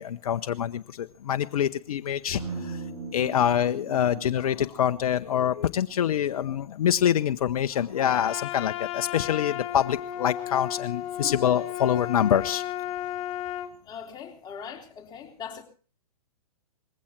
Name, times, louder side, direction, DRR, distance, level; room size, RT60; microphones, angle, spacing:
voice 1, 0.0-2.8 3.1-12.6, left 10 dB, 65° left, 0.8 m, -25 dB
sound 1, 2.4-6.5, right 3 dB, 70° right, 7.0 m, -40 dB
Trumpet, 7.9-13.7, left 13 dB, 35° left, 2.6 m, -34 dB
voice 2, 13.8-15.6, left 7 dB, 20° left, 3.7 m, -40 dB
20.0 x 15.5 x 4.4 m
hypercardioid pair, 125°, 19 cm